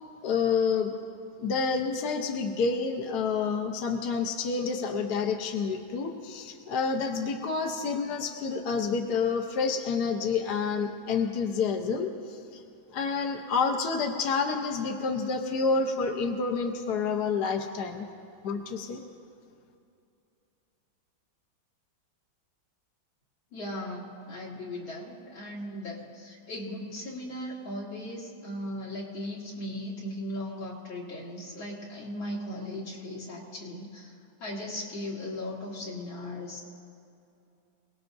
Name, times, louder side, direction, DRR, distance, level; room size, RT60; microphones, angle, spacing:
voice 1, 0.2-0.9 1.4-12.6 12.9-18.1 18.4-19.0, left 5 dB, 60° left, 3 dB, 1.3 m, -29 dB
voice 2, 23.5-34.1 34.4-36.6, left 1 dB, 75° left, -5 dB, 3.5 m, -37 dB
28.0 x 18.5 x 2.7 m, 2.6 s
omnidirectional pair, 2.2 m